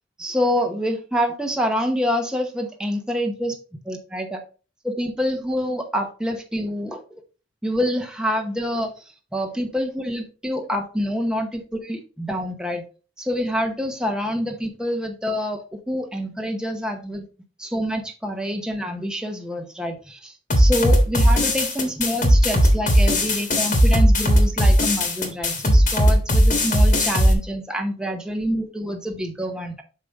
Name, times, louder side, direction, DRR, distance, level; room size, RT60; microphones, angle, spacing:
voice 1, 0.2-3.6 3.9-4.4 4.8-7.0 7.6-12.9 13.2-17.3 17.6-29.8, equal, 5° right, 3 dB, 0.9 m, -26 dB
sound 1, 20.5-27.3, equal, 40° left, 1.5 m, -17 dB
6.6 x 5.0 x 3.5 m, 0.36 s
head